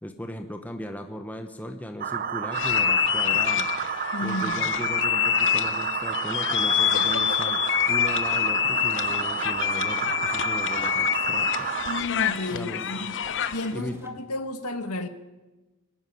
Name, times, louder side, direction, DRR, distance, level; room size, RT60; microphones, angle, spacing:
voice 1, 0.0-3.7 4.2-7.6 7.9-11.7 12.5-13.0 13.7-14.0, equal, 5° left, 1.0 m, -37 dB
sound 1, 2.0-12.0, right 7 dB, 40° right, 0.7 m, -30 dB
sound 2, 2.5-13.7, left 10 dB, 55° left, 0.9 m, -26 dB
voice 2, 4.1-4.7 11.9-13.1 13.5-15.1, left 2 dB, 85° left, 1.7 m, -32 dB
sound 3, 8.1-14.1, right 1 dB, 10° right, 2.4 m, -47 dB
24.0 x 13.0 x 9.4 m
head